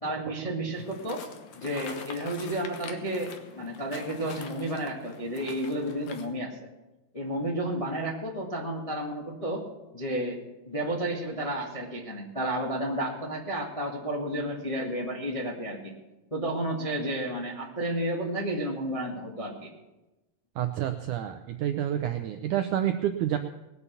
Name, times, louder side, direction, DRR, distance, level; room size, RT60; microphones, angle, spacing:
voice 1, 0.0-1.2 1.6-6.5 7.1-9.6 9.9-10.4 10.6-15.9 16.3-19.7, right 1 dB, 20° left, -2 dB, 1.0 m, -32 dB
sound 1, 0.7-6.3, left 6 dB, 65° left, 2.2 m, -44 dB
voice 2, 20.6-23.4, right 11 dB, 80° right, 7 dB, 1.8 m, -28 dB
20.5 x 7.0 x 7.0 m, 1.0 s
omnidirectional pair, 4.3 m